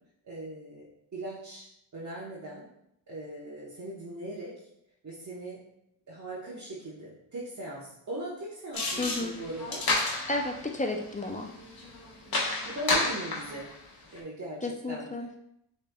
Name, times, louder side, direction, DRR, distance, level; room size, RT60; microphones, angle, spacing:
voice 1, 0.2-1.6 1.9-2.7 3.1-4.7 5.0-5.6 6.1-9.9 12.4-13.7 14.1-15.1, right 1 dB, 35° right, -7 dB, 1.3 m, -39 dB
sound 1, 8.7-13.7 14.2-14.3, left 2 dB, 45° left, 1.4 m, -31 dB
voice 2, 9.0-9.4 10.3-11.5 14.6-15.3, left 2 dB, 15° left, 3 dB, 0.5 m, -32 dB
6.3 x 3.4 x 2.4 m, 0.78 s
cardioid pair, 75°, 48 cm